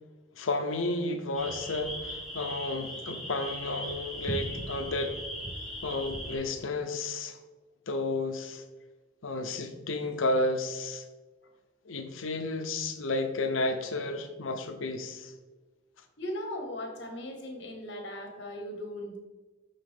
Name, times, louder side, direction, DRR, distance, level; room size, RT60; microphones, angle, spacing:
voice 1, 0.4-5.2 5.8-7.4 7.9-8.6 9.2-11.0 11.9-15.3, left 2 dB, 85° left, 7 dB, 0.7 m, -32 dB
sound 1, 1.3-6.4, equal, ahead, 1.3 m, -38 dB
voice 2, 16.2-19.2, left 1 dB, 60° left, 3 dB, 1.3 m, -38 dB
9.1 x 3.7 x 3.7 m, 1.2 s
head